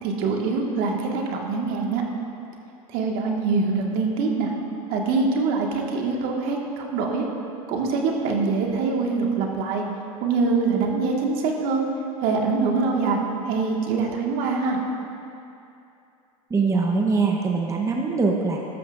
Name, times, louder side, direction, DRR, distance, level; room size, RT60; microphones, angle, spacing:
voice 1, 0.0-2.0 2.9-4.5 4.9-7.2 7.7-9.8 10.2-11.9 12.2-13.2 13.5-14.8, right 4 dB, 55° right, 0 dB, 1.7 m, -24 dB
voice 2, 16.5-18.6, right 4 dB, 15° right, 0 dB, 0.9 m, -22 dB
14.0 x 12.0 x 2.5 m, 2.7 s
supercardioid pair, 110°, 18 cm